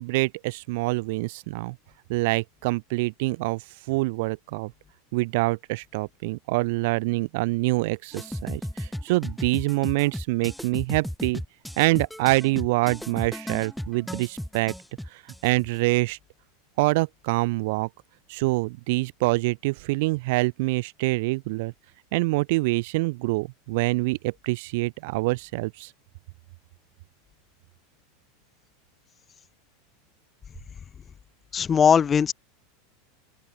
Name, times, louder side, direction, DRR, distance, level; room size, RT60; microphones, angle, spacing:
voice 1, 0.0-1.8 2.1-4.7 5.1-11.4 11.8-14.7 15.1-16.2 16.8-17.9 18.3-21.7 22.1-25.9, right 23 dB, 65° right, 1.4 m, -25 dB
sound 1, 8.1-15.8, equal, ahead, 3.9 m, -35 dB
voice 2, 31.5-32.3, left 7 dB, 25° left, 2.9 m, -19 dB
open air
hypercardioid pair, 110°, 0 cm